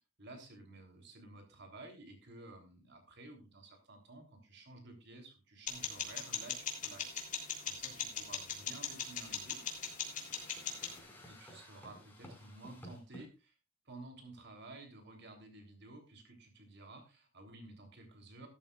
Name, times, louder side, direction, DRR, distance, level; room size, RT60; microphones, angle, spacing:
voice 1, 0.2-9.6 11.2-13.5 13.8-18.5, right 2 dB, 55° right, 4 dB, 3.3 m, -53 dB
Seiko quartz watch tick, 5.7-11.0, left 6 dB, 40° left, 3.2 m, -40 dB
sound 1, 8.4-13.3, left 1 dB, 10° left, 5.2 m, -55 dB
15.5 x 13.5 x 2.4 m, 0.29 s
head